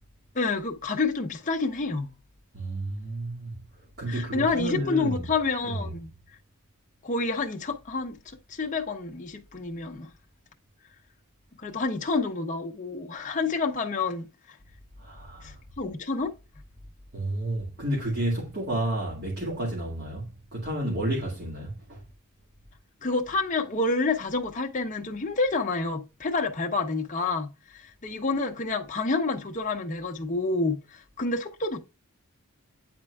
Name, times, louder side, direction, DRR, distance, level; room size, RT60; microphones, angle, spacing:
voice 1, 0.3-2.1 4.1-6.1 7.0-8.2 8.5-10.1 11.6-14.6 15.4-16.3 23.0-31.8, left 3 dB, 35° left, 0.8 m, -28 dB
voice 2, 2.5-3.6 4.0-5.3 5.6-5.9 15.0-15.6 17.1-22.0, right 1 dB, 50° right, 2.1 m, -31 dB
9.3 x 4.3 x 2.3 m
head